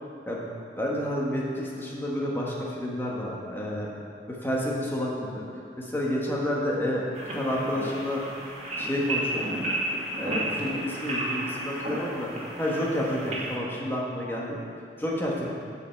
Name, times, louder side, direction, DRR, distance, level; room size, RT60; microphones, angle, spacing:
voice 1, 0.8-3.9 4.3-5.4 5.8-7.1 7.3-8.2 8.7-9.5 10.2-12.3 12.6-14.6 15.0-15.5, equal, 15° left, -4 dB, 1.4 m, -29 dB
sound 1, 7.1-13.6, right 1 dB, 40° right, 1.9 m, -32 dB
7.9 x 5.8 x 7.7 m, 2.4 s
head